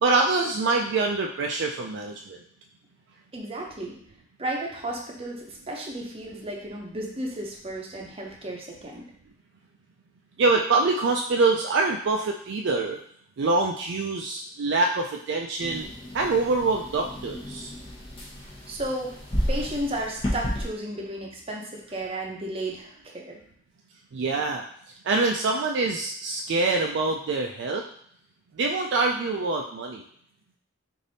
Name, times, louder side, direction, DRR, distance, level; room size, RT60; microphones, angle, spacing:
voice 1, 0.0-2.4 10.4-13.0 13.4-15.8 16.1-17.7 24.1-24.6 25.0-27.8 28.6-30.0, right 3 dB, 60° right, 2 dB, 0.4 m, -25 dB
voice 2, 3.3-4.0 4.4-9.0 18.7-19.1 19.5-23.4, right 1 dB, 30° right, -1 dB, 0.7 m, -33 dB
sound 1, 15.6-20.7, equal, 30° left, 0.9 m, -32 dB
3.3 x 2.6 x 4.0 m, 0.64 s
head